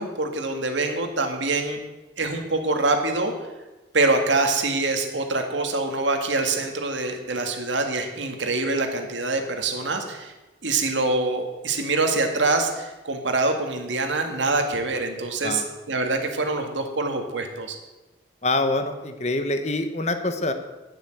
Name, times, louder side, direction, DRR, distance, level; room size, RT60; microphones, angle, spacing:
voice 1, 0.0-1.8 2.2-3.3 3.9-10.3 10.6-17.8, right 3 dB, 90° right, 5 dB, 2.1 m, -25 dB
voice 2, 18.4-20.5, left 2 dB, 35° left, 8 dB, 1.1 m, -25 dB
10.5 x 10.0 x 7.9 m, 1.1 s
head